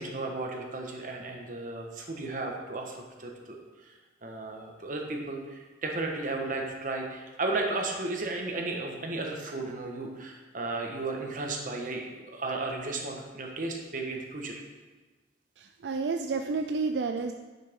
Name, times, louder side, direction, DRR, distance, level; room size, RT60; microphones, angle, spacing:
voice 1, 0.0-3.9 4.2-14.6, right 2 dB, 50° right, 1 dB, 1.3 m, -34 dB
voice 2, 15.6-17.3, right 4 dB, 80° right, 5 dB, 0.4 m, -30 dB
10.0 x 6.4 x 3.7 m, 1.3 s
head